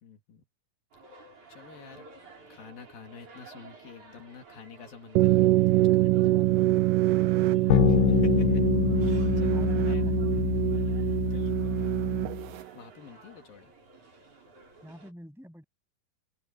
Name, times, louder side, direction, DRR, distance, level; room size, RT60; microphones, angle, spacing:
voice 1, 0.0-0.5 1.5-2.1 2.5-6.5 7.9-8.6 9.0-10.1 11.1-12.2 12.6-13.7, left 7 dB, 70° left, 4.3 m, -49 dB
sound 1, 0.9-15.1, right 3 dB, 50° right, 7.3 m, -53 dB
sound 2, 5.2-12.6, right 17 dB, 75° right, 2.1 m, -24 dB
voice 2, 6.1-8.1 9.5-10.7 14.8-15.6, equal, ahead, 6.8 m, -47 dB
sound 3, 7.7-12.5, left 19 dB, 85° left, 1.8 m, -26 dB
open air
omnidirectional pair, 4.3 m